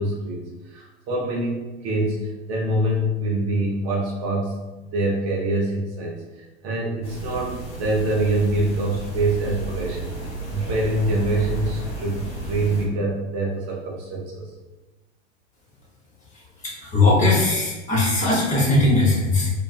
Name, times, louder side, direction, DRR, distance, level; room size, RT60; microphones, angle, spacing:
voice 1, 0.0-4.6 4.9-10.1 10.5-14.5, right 1 dB, 45° right, -2 dB, 0.7 m, -25 dB
sound 1, 7.0-12.8, right 2 dB, 90° left, 1.0 m, -33 dB
voice 2, 16.6-19.5, left 2 dB, 20° left, -5 dB, 1.0 m, -19 dB
2.4 x 2.3 x 2.3 m, 1.2 s
hypercardioid pair, 95°, 33 cm